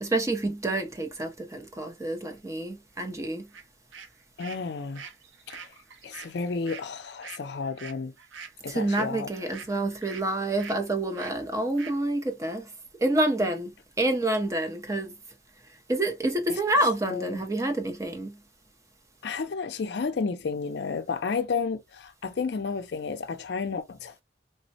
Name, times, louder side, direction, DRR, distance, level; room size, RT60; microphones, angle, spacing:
voice 1, 0.0-3.5 8.7-12.7 13.0-15.1 15.9-18.4, right 1 dB, 15° right, 0.5 m, -28 dB
sound 1, 3.5-3.6 3.9-10.3 10.6-10.8 11.2-11.4 11.8-12.0, right 6 dB, 85° right, 0.6 m, -44 dB
voice 2, 4.4-5.0 5.5-5.7 6.0-8.1 8.6-9.5 16.5-16.6 17.1-17.5 19.2-24.2, left 5 dB, 60° left, 0.4 m, -32 dB
3.3 x 2.1 x 2.6 m
head